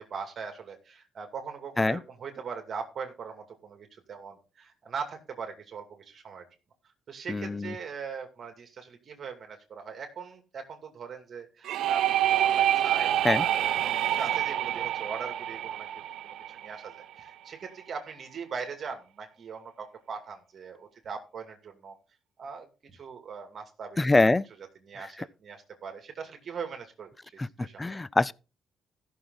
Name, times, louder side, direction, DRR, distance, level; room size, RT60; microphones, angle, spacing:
voice 1, 0.0-6.5 7.1-22.0 22.4-24.1 24.8-27.8, right 5 dB, 50° right, 2.4 m, -41 dB
voice 2, 7.3-7.7 13.2-13.5 24.0-24.5 25.0-25.1 27.4-28.3, left 2 dB, 20° left, 0.4 m, -25 dB
sound 1, 11.6-17.3, right 12 dB, 80° right, 0.6 m, -27 dB
15.0 x 6.5 x 4.0 m
cardioid pair, 90°, 0 cm